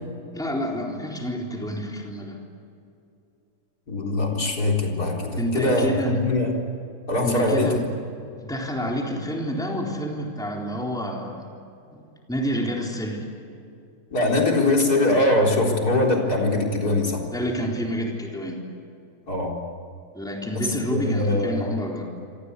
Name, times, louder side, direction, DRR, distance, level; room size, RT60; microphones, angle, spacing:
voice 1, 0.3-2.4 5.4-6.3 7.2-7.9 8.4-11.5 11.9-12.0 12.3-13.3 17.3-18.6 20.1-22.0, equal, ahead, -1 dB, 3.9 m, -28 dB
voice 2, 3.9-6.5 7.1-7.8 14.1-17.3 19.3-19.5 20.9-21.8, left 2 dB, 85° left, 0 dB, 4.6 m, -22 dB
28.0 x 25.5 x 8.4 m, 2.6 s
omnidirectional pair, 1.6 m